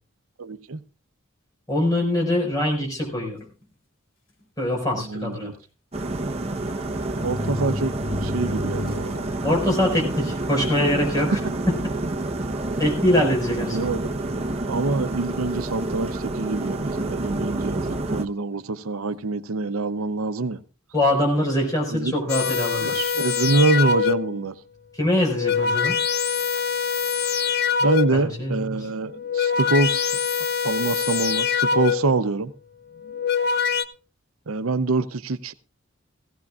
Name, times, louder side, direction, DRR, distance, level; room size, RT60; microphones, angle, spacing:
voice 1, 0.4-0.8 5.1-5.5 7.2-9.2 13.6-14.4 14.7-20.6 21.9-22.1 22.8-24.6 27.8-30.2 30.6-32.5 34.5-35.5, right 3 dB, 90° right, 12 dB, 0.7 m, -25 dB
voice 2, 1.7-3.4 4.6-5.5 9.4-11.4 12.8-13.9 20.9-23.1 24.9-26.0 28.1-28.9, left 1 dB, 15° left, -1 dB, 5.2 m, -23 dB
sound 1, 3.4-3.6 4.4-4.5 4.8-4.9 6.2-6.3 7.0-9.2 9.7-9.8 10.6-10.7 11.1-11.5 12.1-12.2 13.5-14.3 15.3-15.6, left 2 dB, 70° left, 3.0 m, -34 dB
sound 2, 5.9-18.2, right 2 dB, 30° right, 0.9 m, -28 dB
sound 3, 22.3-24.4 25.2-28.3 29.1-32.2 33.0-33.8, left 6 dB, 50° left, 0.7 m, -24 dB
17.0 x 16.0 x 2.4 m, 0.35 s
head